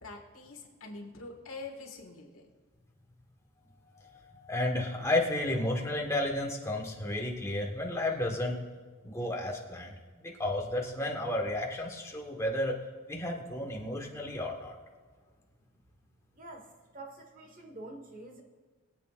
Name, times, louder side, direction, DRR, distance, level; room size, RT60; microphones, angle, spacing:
voice 1, 0.0-2.4, left 3 dB, 65° left, 1 dB, 1.9 m, -45 dB
voice 2, 3.9-8.6 9.0-12.8 13.1-14.8, left 1 dB, 15° left, 0 dB, 1.5 m, -32 dB
voice 3, 16.3-18.4, right 2 dB, 40° right, 2 dB, 1.6 m, -47 dB
22.5 x 8.4 x 2.5 m, 1.4 s
head